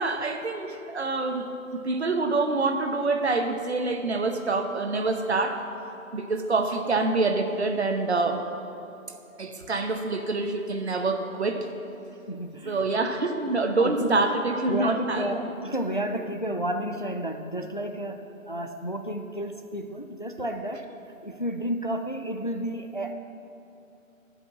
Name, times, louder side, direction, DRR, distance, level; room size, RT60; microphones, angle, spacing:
voice 1, 0.0-1.5 1.7-5.6 6.1-8.4 9.4-11.7 12.7-15.3, right 3 dB, 50° right, 5 dB, 1.0 m, -26 dB
voice 2, 12.3-12.8 13.8-14.3 14.7-20.9 21.2-23.1, right 1 dB, 40° left, 6 dB, 0.4 m, -31 dB
12.0 x 5.4 x 7.0 m, 2.8 s
figure-of-eight pair, 155°, 41 cm